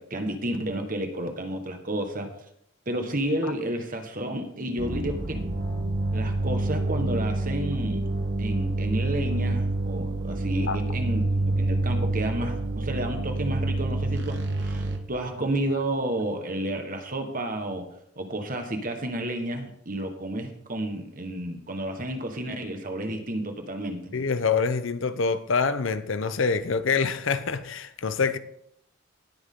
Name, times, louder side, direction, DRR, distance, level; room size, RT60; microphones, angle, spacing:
voice 1, 0.0-2.3 2.8-5.5 6.1-8.0 8.4-17.9 18.2-24.1, right 1 dB, 40° right, 1.4 m, -31 dB
sound 1, 4.8-15.0, right 2 dB, 60° right, 1.3 m, -27 dB
voice 2, 24.1-28.4, left 5 dB, 65° left, 0.7 m, -25 dB
17.5 x 6.3 x 3.7 m
head